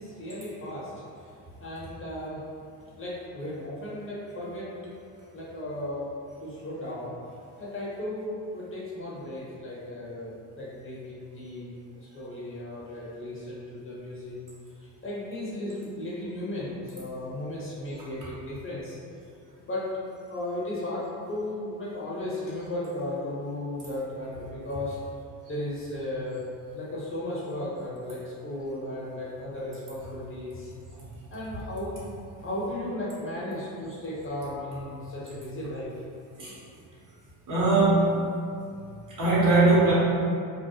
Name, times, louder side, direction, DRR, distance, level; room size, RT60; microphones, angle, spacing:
voice 1, 0.0-2.4 2.9-4.7 5.3-6.1 6.4-7.1 7.6-14.4 14.8-19.0 19.6-19.8 20.3-25.0 25.5-26.4 26.7-30.7 31.3-36.0, left 1 dB, 30° left, -7 dB, 0.7 m, -35 dB
voice 2, 37.5-38.2 39.2-39.9, right 3 dB, 45° right, -8 dB, 1.0 m, -20 dB
2.3 x 2.0 x 2.8 m, 2.4 s
supercardioid pair, 75°, 45 cm